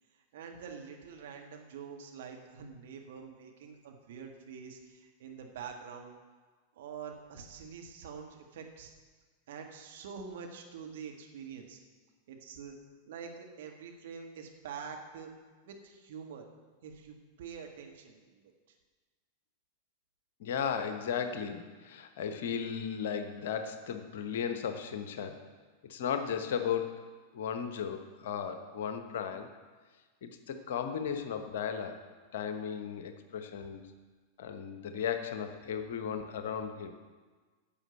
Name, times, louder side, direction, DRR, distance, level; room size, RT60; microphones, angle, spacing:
voice 1, 0.1-6.1 6.7-8.9 9.5-11.8 12.3-12.8 13.1-15.3 15.6-16.5 16.8-18.4 18.7-18.8, right 6 dB, 55° right, 2 dB, 1.7 m, -46 dB
voice 2, 20.4-25.4 25.8-27.0 27.3-29.5 30.2-32.0 32.3-33.8 34.4-36.9, left 7 dB, 55° left, 8 dB, 1.1 m, -35 dB
10.5 x 7.1 x 7.8 m, 1.4 s
figure-of-eight pair, 90°, 0 cm